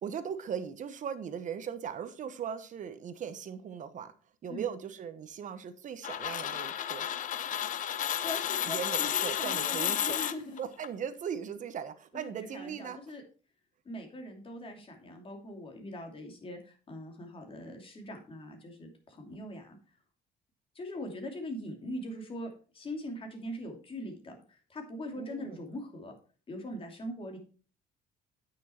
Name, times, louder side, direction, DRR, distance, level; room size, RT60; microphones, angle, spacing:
voice 1, 0.0-4.1 4.4-7.1 8.6-10.2 10.6-13.0 25.2-25.6, right 8 dB, 50° right, 1.1 m, -38 dB
sound 1, 6.0-10.9, left 10 dB, 50° left, 0.7 m, -32 dB
voice 2, 8.2-10.6 12.1-13.2 13.8-19.8 20.7-22.5 22.7-26.1 26.5-27.4, left 1 dB, 30° left, 2.8 m, -41 dB
9.2 x 6.3 x 4.4 m
cardioid pair, 110°, 17 cm